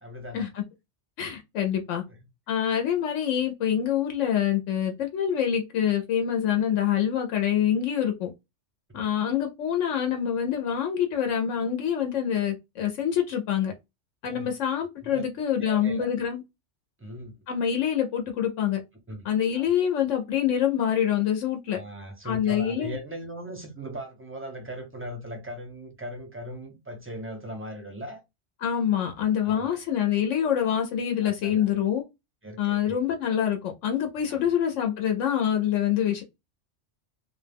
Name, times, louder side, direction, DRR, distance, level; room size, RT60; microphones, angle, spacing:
voice 1, 0.0-0.5 2.1-2.2 14.2-14.5 15.0-15.2 15.6-16.1 17.0-17.4 19.1-19.3 19.5-19.6 21.7-28.2 29.4-29.8 31.2-31.7 32.4-32.9 34.3-34.5, equal, 20° right, 0.4 m, -39 dB
voice 2, 1.2-2.0 2.5-8.3 8.9-13.7 14.2-16.4 17.5-18.8 19.2-21.8 22.2-23.0 28.6-32.0 32.6-36.2, left 9 dB, 85° left, 0.9 m, -26 dB
2.3 x 2.1 x 3.3 m
omnidirectional pair, 1.2 m